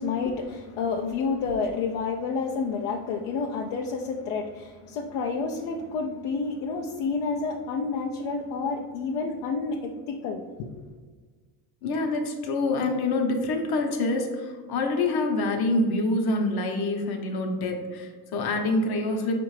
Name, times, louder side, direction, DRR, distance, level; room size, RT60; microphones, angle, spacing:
voice 1, 0.0-10.7, left 4 dB, 75° left, 0 dB, 0.5 m, -29 dB
voice 2, 11.8-19.4, left 2 dB, 55° left, 3 dB, 0.9 m, -26 dB
4.7 x 2.5 x 3.1 m, 1.4 s
supercardioid pair, 80°, 46 cm